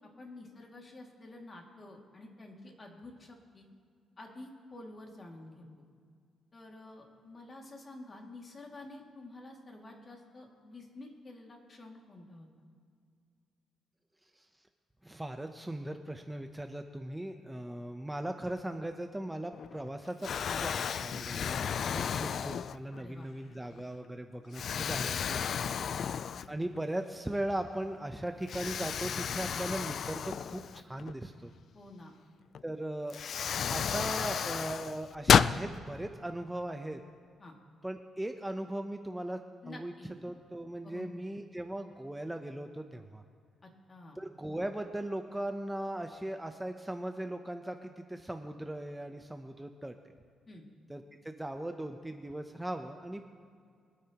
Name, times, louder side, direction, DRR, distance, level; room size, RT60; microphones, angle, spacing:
voice 1, 0.2-3.7 4.2-5.6 6.5-12.5 23.0-23.3 25.7-26.0 31.7-32.1 37.4-37.5 39.6-40.1 40.8-41.2 43.6-44.2 50.5-50.6, left 2 dB, 35° left, 1 dB, 2.2 m, -49 dB
voice 2, 15.0-25.5 26.5-31.5 32.6-33.2 33.7-37.0 37.8-39.4 39.7-39.9 40.2-43.2 44.2-49.9 50.9-53.2, right 1 dB, 10° right, 5 dB, 0.7 m, -38 dB
Explosion, 19.5-19.9 20.2-23.1 23.7-23.8 24.5-26.8 27.1-27.2 28.5-31.1 32.5-32.6 33.1-35.6, left 7 dB, 60° left, 0.3 m, -32 dB
23.5 x 9.5 x 3.0 m, 2.2 s
cardioid pair, 90°, 0 cm